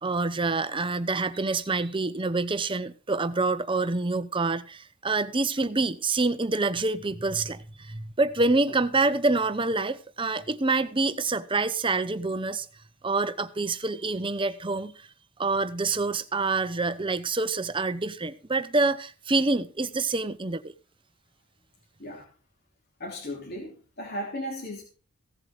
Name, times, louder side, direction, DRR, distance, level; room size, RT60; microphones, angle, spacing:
voice 1, 0.0-12.7 13.0-15.0 15.4-20.7, right 3 dB, 25° right, 0.8 m, -27 dB
voice 2, 23.0-24.8, equal, 45° left, 2.9 m, -36 dB
16.0 x 7.8 x 4.9 m
head